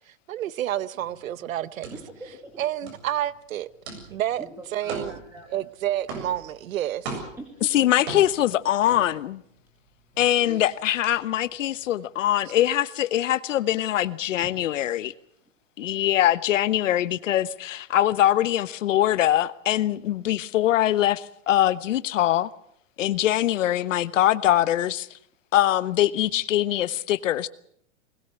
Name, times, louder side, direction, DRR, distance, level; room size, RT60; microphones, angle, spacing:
voice 1, 0.1-1.9 2.6-3.7 4.1-4.5 4.7-5.1 5.5-7.2, right 12 dB, 90° right, 1.0 m, -29 dB
sound 1, 1.0-9.7 10.0-11.9, right 3 dB, 55° right, 7.8 m, -39 dB
voice 2, 1.9-2.7 4.1-5.5 7.4-7.7 8.0-8.1 14.4-14.5, right 1 dB, 5° right, 2.1 m, -43 dB
voice 3, 7.7-9.4 10.2-15.1 15.8-22.5 23.0-25.1 25.5-27.5, left 13 dB, 70° left, 1.2 m, -23 dB
21.0 x 18.5 x 8.1 m
supercardioid pair, 170°, 39 cm